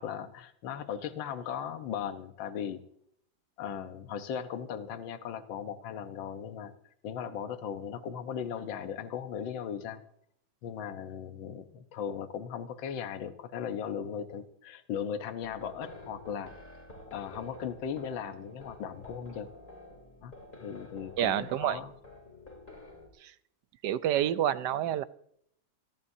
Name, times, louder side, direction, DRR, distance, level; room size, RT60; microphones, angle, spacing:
voice 1, 0.0-2.8 3.6-6.7 7.0-10.0 10.6-16.5 17.1-19.5 20.2-20.3 20.6-21.9, left 8 dB, 70° left, 8 dB, 1.7 m, -37 dB
sound 1, 15.4-23.1, left 2 dB, 25° left, 3.2 m, -49 dB
voice 2, 21.2-21.8 23.2-23.3 23.8-25.0, right 11 dB, 70° right, 13 dB, 1.2 m, -28 dB
29.0 x 12.5 x 2.7 m, 0.69 s
omnidirectional pair, 2.2 m